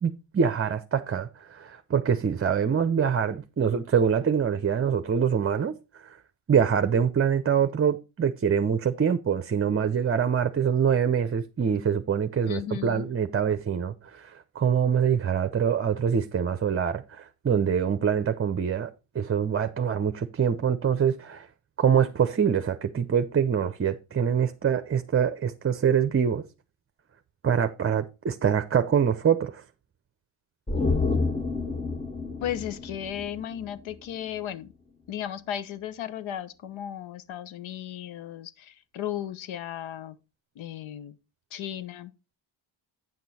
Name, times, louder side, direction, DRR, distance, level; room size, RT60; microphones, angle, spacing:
voice 1, 0.0-5.7 6.1-6.2 6.5-18.9 19.1-21.5 21.8-26.4 27.4-29.6, right 7 dB, 30° right, 0.7 m, -25 dB
voice 2, 12.4-13.1 32.4-34.7 35.1-40.2 40.6-41.2 41.5-42.1, left 10 dB, 70° left, 1.0 m, -35 dB
sound 1, 30.7-34.1 34.4-34.5, left 3 dB, 10° left, 0.8 m, -29 dB
9.3 x 6.1 x 4.1 m
cardioid pair, 90°, 49 cm